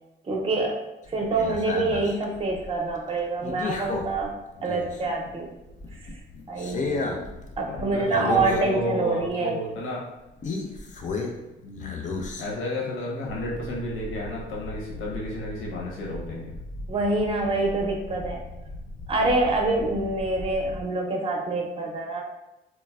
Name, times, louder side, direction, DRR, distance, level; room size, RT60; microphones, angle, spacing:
voice 1, 0.2-0.8 1.1-4.3 4.6-5.5 5.9-6.1 6.5-7.3 7.6-9.6 16.9-18.4 19.1-22.2, right 2 dB, 30° right, 1 dB, 0.5 m, -26 dB
sound 1, 1.1-5.3 5.7-8.9 9.2-9.3 10.4-11.5 11.7-12.8 13.3-20.8, left 3 dB, 40° left, 0.4 m, -35 dB
voice 2, 7.7-10.0 11.6-12.0 12.4-16.5, left 1 dB, 85° left, -3 dB, 0.7 m, -32 dB
3.2 x 2.0 x 2.2 m, 0.97 s
cardioid pair, 90°, 20 cm